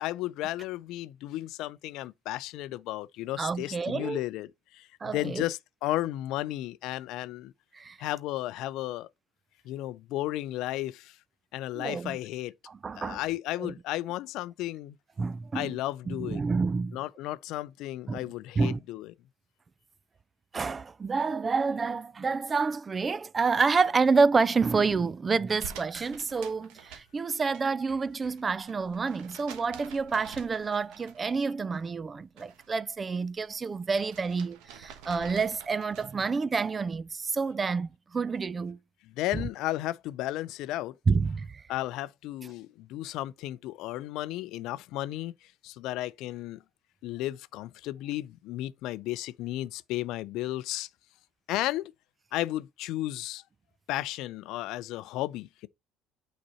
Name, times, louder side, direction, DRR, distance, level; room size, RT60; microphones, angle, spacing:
voice 1, 0.0-7.5 8.0-9.1 9.6-11.2 11.5-12.5 13.0-15.0 15.5-16.4 16.9-19.1 39.0-41.0 41.7-45.3 45.6-46.6 47.0-50.9 51.5-51.9 52.3-53.4 53.9-55.7, left 15 dB, 65° left, 0.4 m, -34 dB
voice 2, 3.4-4.2 5.0-5.4 7.7-8.0 11.7-12.2 12.7-13.2 13.6-13.7 15.2-15.8 16.1-17.0 18.1-18.3 18.6-18.8 20.5-38.8 41.1-41.6, right 4 dB, 30° right, 0.5 m, -28 dB
sound 1, 25.6-27.6 27.9-31.4 31.7-32.7 33.0-36.3, right 8 dB, 70° right, 1.2 m, -48 dB
8.6 x 4.1 x 4.2 m
hypercardioid pair, 60°, 0 cm